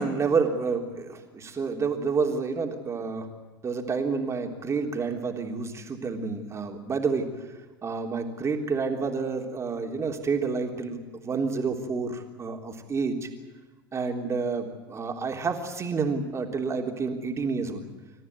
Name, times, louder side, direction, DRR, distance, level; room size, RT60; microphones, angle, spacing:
voice 1, 0.0-3.3 3.6-13.3 13.9-17.9, right 4 dB, 25° right, 3 dB, 3.5 m, -29 dB
28.0 x 14.5 x 9.5 m, 1.3 s
figure-of-eight pair, 80°, 11 cm